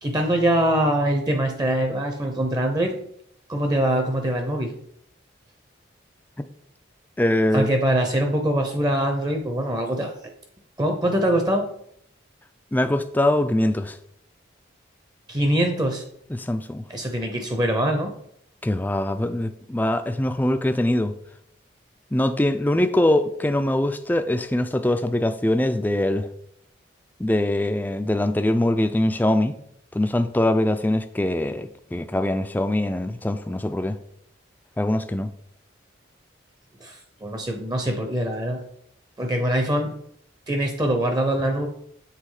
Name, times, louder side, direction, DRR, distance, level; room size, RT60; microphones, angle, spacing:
voice 1, 0.0-3.0 3.5-4.7 7.5-10.1 10.8-11.7 15.3-16.0 16.9-18.1 36.8-38.6 39.2-39.9 40.5-41.7, right 1 dB, 20° right, 0.7 m, -23 dB
voice 2, 7.2-7.7 12.7-13.9 16.3-16.8 18.6-21.1 22.1-26.3 27.2-29.6 29.9-34.0 34.8-35.3, left 1 dB, 10° left, 0.3 m, -23 dB
7.6 x 3.6 x 4.8 m
head